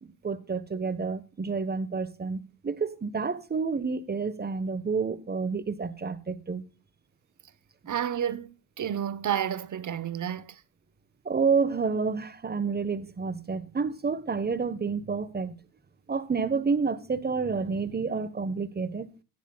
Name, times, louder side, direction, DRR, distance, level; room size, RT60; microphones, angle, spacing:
voice 1, 0.0-6.6 11.2-15.6 16.1-19.1, right 5 dB, 20° right, 1.3 m, -29 dB
voice 2, 7.9-10.6, right 9 dB, 40° right, 1.0 m, -31 dB
16.0 x 10.0 x 2.3 m
hypercardioid pair, 65°, 47 cm